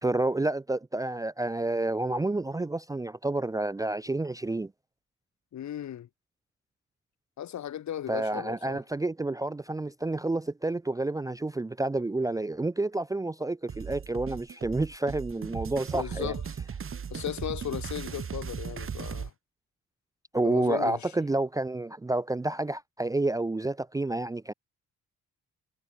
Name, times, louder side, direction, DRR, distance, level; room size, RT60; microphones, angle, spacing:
voice 1, 0.0-4.7 8.1-16.3 20.3-24.5, right 2 dB, 10° right, 0.5 m, -29 dB
voice 2, 5.5-6.1 7.4-8.8 15.9-16.4 17.1-19.3 20.4-21.1, left 10 dB, 65° left, 4.6 m, -36 dB
sound 1, 13.7-19.3, right 7 dB, 45° right, 3.9 m, -37 dB
cardioid pair, 90°, 30 cm